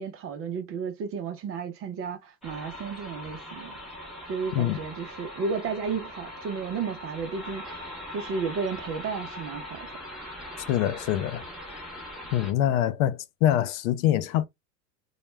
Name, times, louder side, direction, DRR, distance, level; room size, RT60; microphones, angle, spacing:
voice 1, 0.0-3.7 4.3-7.9 8.1-9.9, right 5 dB, 30° right, 0.5 m, -33 dB
sound 1, 2.4-12.5, left 1 dB, ahead, 0.9 m, -41 dB
voice 2, 10.7-12.0 12.3-14.5, left 12 dB, 60° left, 0.5 m, -25 dB
2.2 x 2.1 x 3.1 m
hypercardioid pair, 90°, 48 cm